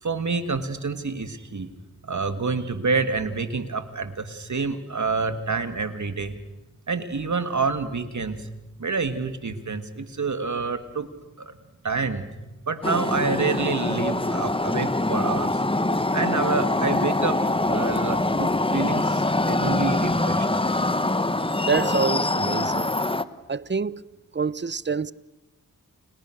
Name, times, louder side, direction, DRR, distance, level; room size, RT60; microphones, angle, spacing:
voice 1, 0.0-1.7 2.0-6.4 6.9-8.5 8.8-11.1 11.4-11.5 11.8-12.3 12.7-15.6 16.1-21.5, right 4 dB, 60° right, 2.9 m, -28 dB
sound 1, 12.8-23.2, left 2 dB, 15° left, 1.3 m, -24 dB
voice 2, 21.6-22.9 23.5-24.0 24.3-25.1, right 5 dB, 30° right, 0.9 m, -26 dB
29.5 x 29.5 x 6.6 m
cardioid pair, 55°, 34 cm